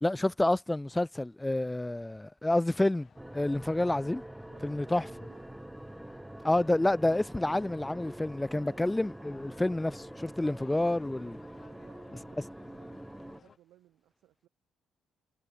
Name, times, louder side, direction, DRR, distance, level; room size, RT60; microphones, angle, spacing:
voice 1, 0.0-3.1 3.3-4.2 4.6-5.0 6.4-11.4, left 1 dB, 10° left, 0.7 m, -29 dB
sound 1, 2.7-13.6, left 6 dB, 45° left, 3.8 m, -60 dB
sound 2, 3.2-13.4, right 1 dB, 5° right, 3.3 m, -45 dB
voice 2, 4.5-5.4 8.7-8.9 11.2-14.5, right 14 dB, 85° right, 7.2 m, -62 dB
cardioid pair, 90°, 0 cm